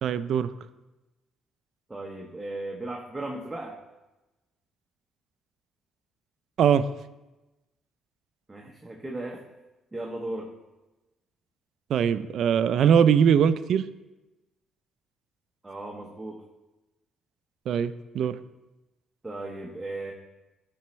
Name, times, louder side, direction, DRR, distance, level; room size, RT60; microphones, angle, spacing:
voice 1, 0.0-0.5 6.6-6.8 11.9-13.9 17.7-18.4, right 8 dB, 65° right, 14 dB, 0.4 m, -21 dB
voice 2, 1.9-3.8 8.5-9.4 9.9-10.5 15.6-16.4 19.2-20.1, right 2 dB, 15° right, -1 dB, 0.9 m, -36 dB
12.0 x 4.3 x 3.1 m, 1.0 s
cardioid pair, 85°, 0 cm